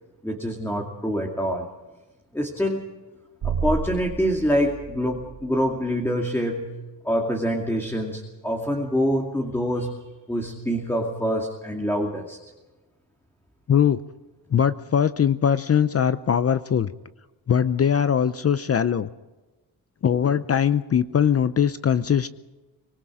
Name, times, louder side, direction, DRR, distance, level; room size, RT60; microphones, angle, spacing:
voice 1, 0.2-1.7 2.3-2.9 3.4-6.7 7.0-10.0 10.3-12.4, equal, 5° left, 1 dB, 2.4 m, -25 dB
sound 1, 3.4-5.8, right 5 dB, 60° right, 2.3 m, -31 dB
voice 2, 14.5-16.9 17.5-19.1 20.0-22.3, left 8 dB, 40° left, 13 dB, 0.7 m, -21 dB
25.0 x 21.0 x 5.0 m, 1.2 s
cardioid pair, 125°, 38 cm